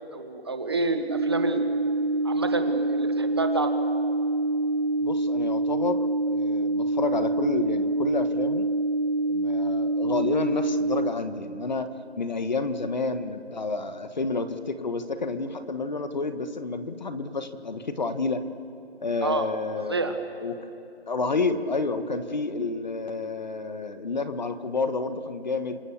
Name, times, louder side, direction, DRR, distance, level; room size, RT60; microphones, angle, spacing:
voice 1, 0.1-1.6 2.2-3.7 19.2-19.5 19.9-20.2, right 3 dB, 25° right, 7 dB, 1.1 m, -28 dB
sound 1, 1.1-11.1, right 2 dB, 45° right, 1.2 m, -26 dB
voice 2, 5.0-8.7 9.3-11.9 12.2-18.4 19.0-20.0 20.4-20.6 21.1-25.8, left 3 dB, 40° left, 10 dB, 1.4 m, -30 dB
28.0 x 26.0 x 7.3 m, 2.6 s
hypercardioid pair, 180°, 33 cm